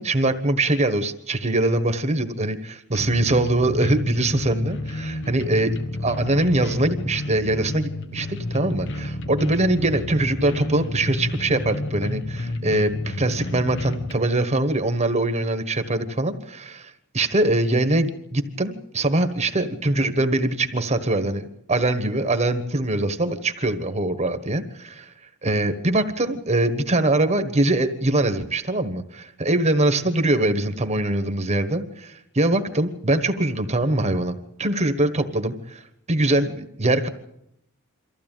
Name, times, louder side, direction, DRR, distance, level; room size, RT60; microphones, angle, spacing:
voice 1, 0.0-5.8 6.0-25.1 25.4-35.8 36.1-37.1, right 2 dB, 30° right, 10 dB, 1.3 m, -23 dB
sound 1, 2.9-14.1, left 2 dB, 55° left, 1.3 m, -31 dB
24.0 x 15.5 x 9.1 m, 0.80 s
head